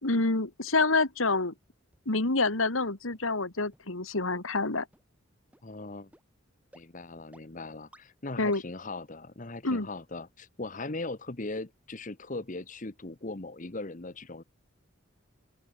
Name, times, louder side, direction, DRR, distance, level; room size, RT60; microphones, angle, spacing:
voice 1, 0.0-1.5 2.1-4.9 8.4-8.6 9.6-9.9, left 3 dB, 75° left, 2.4 m, -27 dB
sound 1, 1.9-2.0 2.5-2.6 3.1-3.2 3.7-3.8 4.3-4.4 4.9-5.0 5.5-5.6 6.1-6.2 6.7-6.8 7.3-7.4 7.9-8.0 8.5-8.6, right 1 dB, 5° right, 5.6 m, -56 dB
voice 2, 5.6-6.1 6.7-14.4, left 2 dB, 40° left, 1.1 m, -39 dB
open air
head